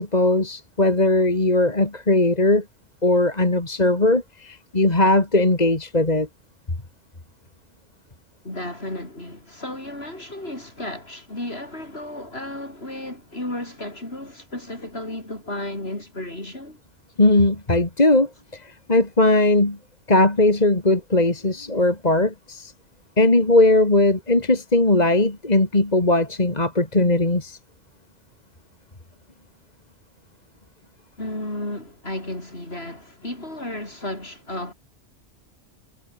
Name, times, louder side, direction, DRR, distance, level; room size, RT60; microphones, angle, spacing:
voice 1, 0.0-2.6 3.0-6.3 17.2-19.8 20.1-22.7 23.2-27.6, left 2 dB, 35° left, 3.0 m, -19 dB
voice 2, 8.4-16.8 31.2-34.7, left 1 dB, 55° left, 7.3 m, -33 dB
omnidirectional pair, 1.2 m